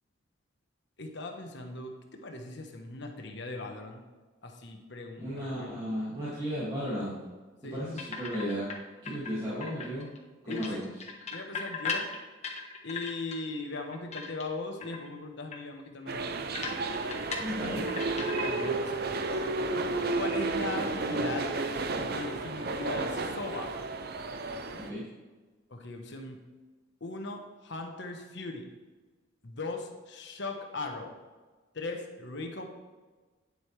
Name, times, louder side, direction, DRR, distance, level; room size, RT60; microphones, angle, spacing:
voice 1, 1.0-4.0 4.4-6.1 7.6-7.8 10.5-10.8 11.3-12.1 12.8-16.3 18.4-19.1 20.1-21.5 22.1-23.8 25.7-26.4 27.0-28.7 29.4-31.2 31.7-32.7, left 2 dB, 60° left, 4 dB, 1.2 m, -39 dB
voice 2, 5.2-7.2 7.7-8.7 9.0-10.1 10.4-10.9 17.4-17.8 24.9-25.0, equal, 25° right, -10 dB, 2.4 m, -34 dB
sound 1, 8.0-8.8 9.1-10.2 10.5-13.4 13.8-14.6 14.8-15.1 15.5-15.6 15.9-16.0 16.5-18.8 19.0-19.4, left 5 dB, 35° left, 1.3 m, -37 dB
sound 2, 16.1-24.9, right 3 dB, 50° right, 0.6 m, -32 dB
9.6 x 7.9 x 3.4 m, 1.3 s
head